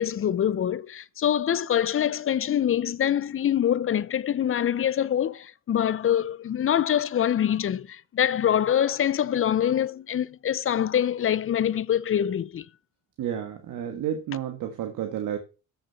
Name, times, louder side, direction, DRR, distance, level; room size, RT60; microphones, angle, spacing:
voice 1, 0.0-12.6, left 10 dB, 40° left, 0.6 m, -25 dB
voice 2, 13.2-15.4, right 10 dB, 75° right, 1.5 m, -31 dB
7.4 x 6.5 x 5.5 m
supercardioid pair, 75°, 32 cm